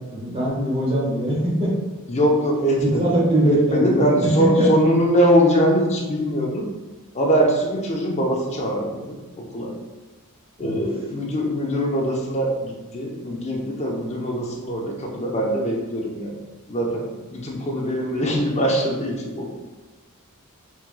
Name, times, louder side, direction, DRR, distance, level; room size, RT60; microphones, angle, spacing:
voice 1, 0.0-1.7 2.8-4.7 10.6-10.8, right 1 dB, 25° right, -7 dB, 1.3 m, -22 dB
voice 2, 2.1-3.1 3.4-6.7 7.1-9.8 10.6-16.4 16.7-19.5, equal, 30° left, -1 dB, 0.7 m, -22 dB
4.5 x 3.6 x 2.2 m, 1.3 s
head